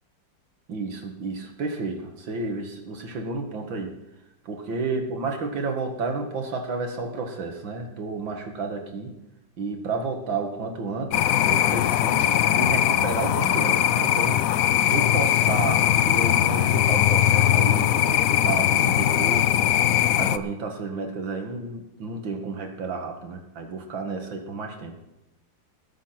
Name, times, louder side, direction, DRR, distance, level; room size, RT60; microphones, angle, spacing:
voice 1, 0.7-3.9 4.5-9.1 9.6-14.4 14.8-19.8 20.2-24.9, right 3 dB, 75° right, 4 dB, 2.5 m, -31 dB
sound 1, 11.1-20.4, left 11 dB, 85° left, 0.7 m, -21 dB
19.0 x 7.7 x 5.9 m, 0.94 s
omnidirectional pair, 2.1 m